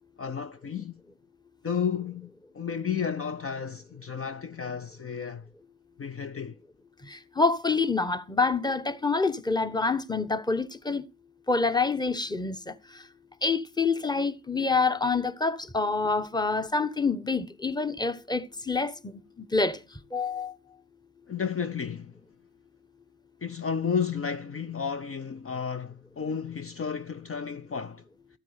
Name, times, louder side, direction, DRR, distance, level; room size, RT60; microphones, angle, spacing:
voice 1, 0.2-0.9 1.6-5.5 6.0-6.6 21.3-22.1 23.4-28.0, left 6 dB, 40° left, 0.7 m, -32 dB
voice 2, 7.1-11.0 11.5-12.7 13.4-19.8 20.1-20.5, left 4 dB, 10° left, 1.1 m, -27 dB
13.5 x 8.4 x 4.9 m
supercardioid pair, 50°, 36 cm